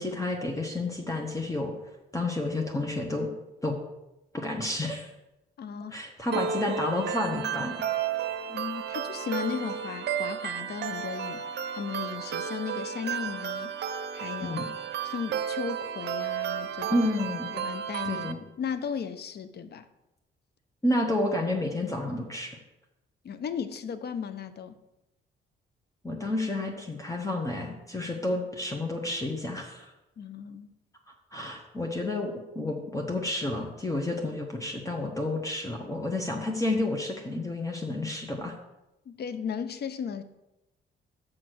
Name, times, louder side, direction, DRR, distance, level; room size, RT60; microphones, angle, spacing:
voice 1, 0.0-1.7 2.1-3.3 3.6-3.7 4.3-5.1 5.9-7.8 8.1-8.3 14.4-14.7 16.9-17.5 18.0-18.4 20.8-22.5 26.0-29.9 31.3-38.5, left 2 dB, 15° left, 1 dB, 1.2 m, -30 dB
voice 2, 5.6-6.1 8.5-11.4 11.7-14.6 15.0-17.1 17.5-18.3 18.6-19.9 23.2-24.8 30.2-30.7 39.1-40.2, left 7 dB, 55° left, 12 dB, 0.8 m, -36 dB
sound 1, 6.3-18.3, right 8 dB, 60° right, 0.7 m, -33 dB
6.3 x 6.2 x 6.2 m, 0.96 s
cardioid pair, 90°, 20 cm